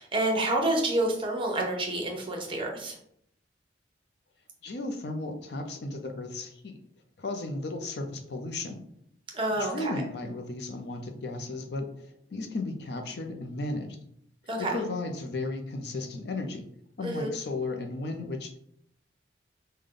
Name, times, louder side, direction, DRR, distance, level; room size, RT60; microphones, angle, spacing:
voice 1, 0.0-2.9 9.3-9.9 14.5-14.7 17.0-17.3, right 1 dB, 30° right, 1 dB, 0.8 m, -28 dB
voice 2, 4.6-6.8 7.2-8.8 9.6-14.0 14.6-16.7 17.0-18.6, left 2 dB, 65° left, 5 dB, 0.6 m, -35 dB
5.1 x 2.2 x 3.7 m, 0.71 s
head